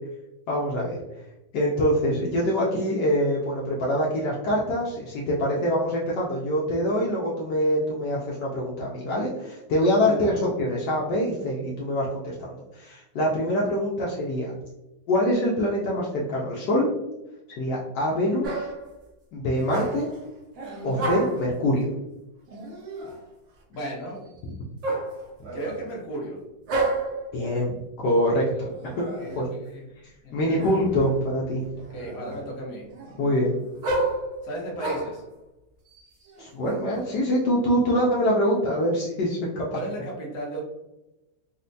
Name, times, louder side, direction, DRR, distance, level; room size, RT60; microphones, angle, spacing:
voice 1, 0.5-1.0 1.5-14.5 15.1-16.9 17.6-18.7 19.3-20.1 20.8-21.9 24.4-24.5 27.3-28.9 29.4-29.5 30.3-31.7 33.2-33.6 36.4-39.7, equal, 75° left, -4 dB, 1.2 m, -24 dB
voice 2, 10.0-10.4 23.7-24.3 25.5-26.4 29.2-29.8 30.2-30.6 31.9-32.9 34.4-35.2 39.7-40.6, right 1 dB, 55° left, -2 dB, 1.2 m, -35 dB
sound 1, 18.4-18.9 19.6-20.2 20.6-21.5 22.5-23.2 24.8-25.8 26.7-27.3 28.7-29.5 30.6-31.1 31.6-32.5 32.9-35.2 35.9-37.0, right 2 dB, 70° right, 0.7 m, -31 dB
4.2 x 2.1 x 2.6 m, 0.96 s
omnidirectional pair, 2.0 m